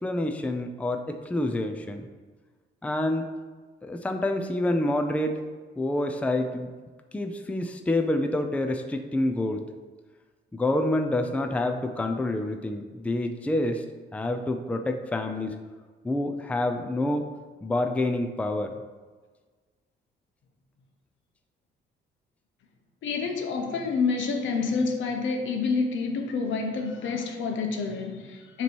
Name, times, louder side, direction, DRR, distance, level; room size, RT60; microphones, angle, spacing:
voice 1, 0.0-2.1 2.8-3.3 3.8-5.3 5.8-6.7 7.1-9.6 10.5-13.8 14.1-15.5 16.0-17.3 17.6-18.7, left 1 dB, 5° left, 5 dB, 0.4 m, -27 dB
voice 2, 23.0-28.6, left 4 dB, 75° left, 3 dB, 0.9 m, -28 dB
6.9 x 3.1 x 4.4 m, 1.4 s
cardioid pair, 90°, 20 cm